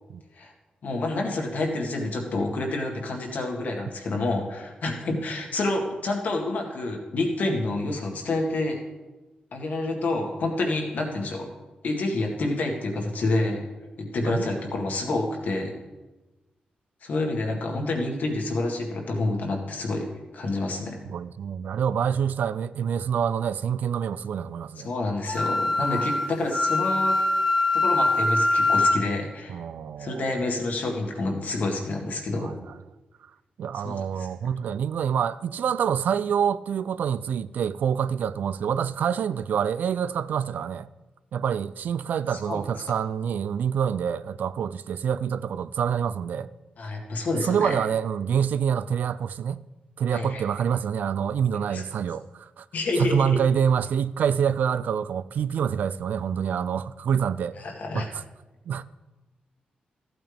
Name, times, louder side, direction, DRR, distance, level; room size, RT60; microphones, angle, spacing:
voice 1, 0.8-8.8 9.5-11.5 11.8-13.6 14.0-15.7 17.0-20.1 20.3-21.0 24.8-27.2 27.7-29.6 30.0-32.5 33.8-34.3 42.5-42.6 46.8-47.8 50.1-50.4 51.7-51.8 52.7-53.4 57.6-58.1, left 2 dB, 70° left, 1.9 m, -28 dB
voice 2, 14.2-14.5 21.0-24.9 25.8-26.2 29.5-30.6 32.4-32.8 33.6-40.9 41.3-46.5 47.3-49.6 50.0-52.7 52.9-57.6 57.9-58.2 58.7-59.0, right 8 dB, 75° right, 0.3 m, -27 dB
Wind instrument woodwind instrument, 25.3-29.0, left 2 dB, 5° left, 1.9 m, -23 dB
14.0 x 8.7 x 3.5 m
cardioid pair, 85°, 3 cm